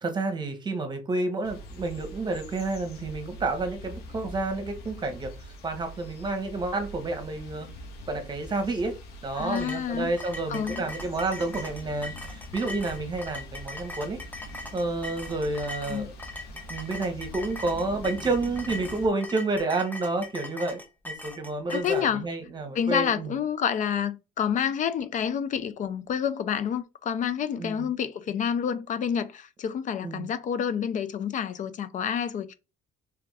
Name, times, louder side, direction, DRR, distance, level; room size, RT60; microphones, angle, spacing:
voice 1, 0.0-5.3 5.6-7.7 8.1-8.9 9.2-14.2 14.7-16.1 16.7-20.8 21.0-23.3 27.5-27.9 30.0-30.3, right 3 dB, 25° right, 1.1 m, -30 dB
sound 1, 1.4-19.1, left 1 dB, 70° left, 1.4 m, -44 dB
voice 2, 9.3-10.1 10.5-10.9 15.8-16.1 21.7-22.2 22.7-32.5, left 8 dB, 50° left, 0.5 m, -28 dB
sound 2, 9.5-22.0, left 2 dB, 10° left, 0.9 m, -40 dB
3.5 x 3.4 x 3.4 m
cardioid pair, 110°, 17 cm